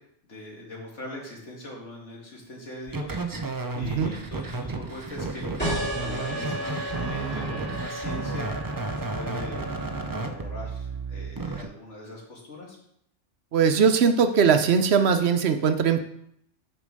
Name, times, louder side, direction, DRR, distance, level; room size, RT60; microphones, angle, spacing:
voice 1, 0.3-3.5 3.8-5.5 5.9-8.5 8.9-9.7 10.1-12.8, left 1 dB, 70° left, -2 dB, 2.5 m, -41 dB
sound 1, 2.9-11.6, right 3 dB, 30° right, 0.3 m, -32 dB
voice 2, 3.8-4.1 13.5-16.0, right 6 dB, 65° right, 8 dB, 0.9 m, -20 dB
sound 2, 5.6-10.8, equal, 10° left, 2.6 m, -34 dB
6.4 x 5.3 x 6.4 m, 0.73 s
omnidirectional pair, 1.2 m